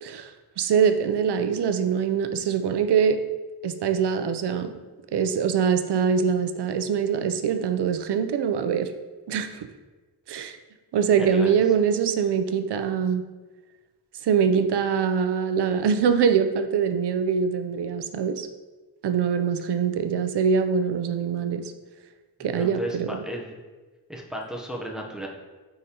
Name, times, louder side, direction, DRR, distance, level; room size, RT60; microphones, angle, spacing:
voice 1, 0.6-3.2 3.6-4.7 5.1-8.9 9.3-9.7 10.3-10.6 10.9-13.2 14.2-18.5 19.0-21.7 22.4-23.2, right 7 dB, 85° right, 9 dB, 0.6 m, -23 dB
voice 2, 11.2-11.6 22.5-23.6 24.1-25.3, equal, ahead, -1 dB, 0.8 m, -34 dB
9.2 x 5.1 x 2.9 m, 1.2 s
wide cardioid pair, 175°, 39 cm